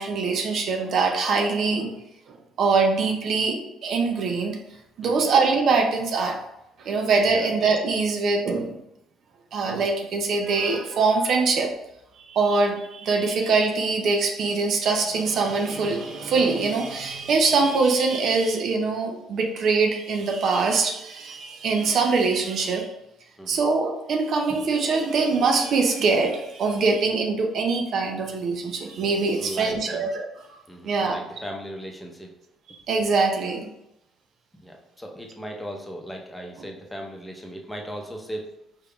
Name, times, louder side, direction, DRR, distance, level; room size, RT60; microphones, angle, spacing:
voice 1, 0.0-1.9 2.3-4.6 5.0-6.4 6.8-8.8 9.5-11.7 12.3-22.9 23.5-30.6 30.8-31.2 32.9-33.7, right 4 dB, 60° right, 3 dB, 0.5 m, -23 dB
voice 2, 29.4-30.0 30.7-32.3 34.6-38.5, equal, 5° left, 1 dB, 0.8 m, -37 dB
4.4 x 3.4 x 2.3 m, 0.86 s
hypercardioid pair, 55°, 0 cm